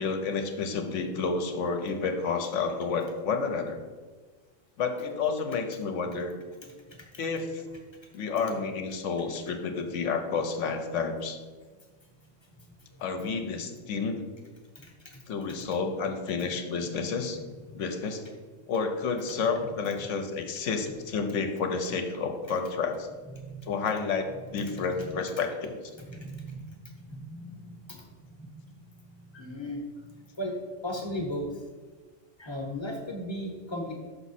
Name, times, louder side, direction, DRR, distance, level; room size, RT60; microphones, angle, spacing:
voice 1, 0.0-3.8 4.8-6.3 7.2-7.6 8.1-11.4 13.0-14.2 15.3-17.4 17.7-18.2 18.7-23.1 23.7-25.7, left 5 dB, 75° left, 5 dB, 1.0 m, -30 dB
voice 2, 6.7-7.2 7.7-7.8 11.8-13.0 14.7-15.2 17.6-17.8 19.6-19.7 23.2-23.7 24.4-25.1 25.9-31.6 32.4-34.0, equal, 25° left, 1 dB, 0.8 m, -39 dB
6.0 x 5.5 x 4.1 m, 1.4 s
omnidirectional pair, 1.3 m